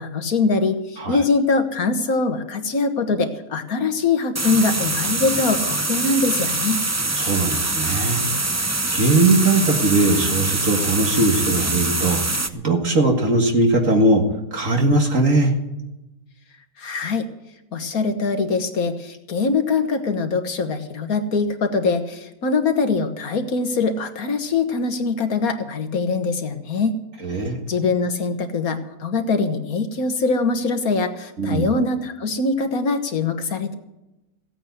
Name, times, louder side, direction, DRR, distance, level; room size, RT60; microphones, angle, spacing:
voice 1, 0.0-6.8 16.8-17.2 17.7-26.9 27.7-33.8, left 4 dB, 70° left, 7 dB, 1.8 m, -23 dB
sound 1, 4.3-12.5, right 2 dB, 20° right, 0.4 m, -24 dB
voice 2, 7.2-8.6 8.9-12.2 12.5-14.2 14.5-15.5 27.2-27.6 31.4-31.7, right 2 dB, 55° right, 2 dB, 2.1 m, -19 dB
16.0 x 8.9 x 8.1 m, 0.95 s
omnidirectional pair, 1.6 m